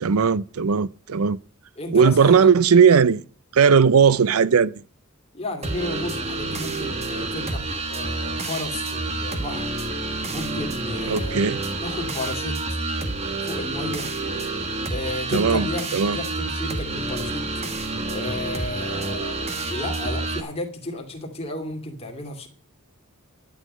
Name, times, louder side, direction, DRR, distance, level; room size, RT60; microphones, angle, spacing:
voice 1, 0.0-1.4 1.9-3.2 3.5-4.7 11.1-11.6 15.3-16.2, right 6 dB, 75° right, 0.5 m, -17 dB
voice 2, 1.8-2.6 5.3-9.7 10.3-11.4 11.8-12.8 13.4-14.1 14.9-17.4 18.1-22.5, left 1 dB, 30° left, 2.5 m, -33 dB
sound 1, 5.6-20.4, right 2 dB, 30° right, 1.5 m, -29 dB
11.5 x 9.6 x 5.5 m
head